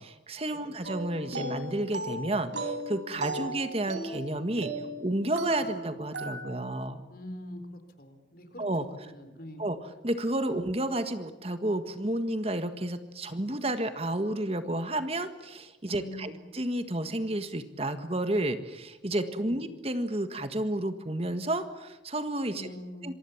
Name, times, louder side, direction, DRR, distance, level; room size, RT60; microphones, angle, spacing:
voice 1, 0.0-4.7 5.0-7.0 8.6-8.9 9.6-9.8 10.0-22.7 23.0-23.1, right 1 dB, 35° right, 9 dB, 1.6 m, -31 dB
sound 1, 0.8-6.7, right 2 dB, 80° right, 4.4 m, -37 dB
voice 2, 7.1-8.7 9.0-9.6 15.9-16.3 19.4-19.6 22.5-23.1, left 1 dB, 50° left, 9 dB, 4.2 m, -44 dB
27.0 x 24.0 x 7.3 m, 1.1 s
head